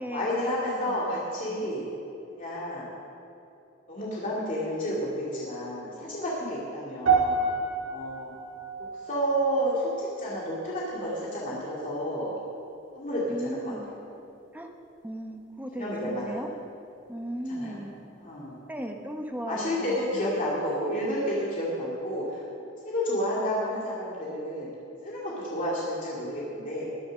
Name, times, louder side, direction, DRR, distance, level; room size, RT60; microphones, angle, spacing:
voice 1, 0.1-1.9 2.4-2.9 3.9-7.4 7.8-8.3 9.0-12.3 12.9-13.7 15.8-16.4 17.5-17.8 18.2-18.6 19.5-22.4 22.8-24.7 25.0-26.9, equal, 40° left, -7 dB, 2.5 m, -30 dB
voice 2, 0.9-1.2 1.5-1.7 13.3-14.0 14.5-14.7 15.0-16.5 17.1-17.9 18.7-20.4, right 1 dB, 10° right, 3 dB, 1.0 m, -37 dB
sound 1, 7.1-11.4 11.7-12.1 12.7-12.8, right 4 dB, 65° right, 2.3 m, -30 dB
20.5 x 7.1 x 6.3 m, 2.8 s
head